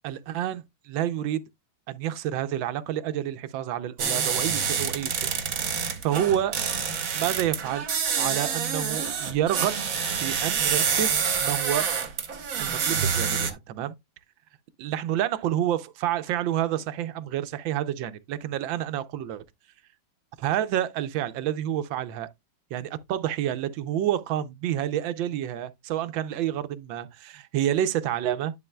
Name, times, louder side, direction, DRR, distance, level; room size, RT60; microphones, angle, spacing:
voice 1, 0.0-1.4 1.9-6.6 7.1-7.9 8.2-9.9 10.2-11.1 11.4-11.9 12.6-13.9 14.8-19.4 20.4-22.3 22.7-28.5, right 11 dB, 80° right, 1.4 m, -29 dB
sound 1, 4.0-13.5, right 6 dB, 50° right, 1.4 m, -27 dB
11.0 x 5.6 x 2.2 m
omnidirectional pair, 2.1 m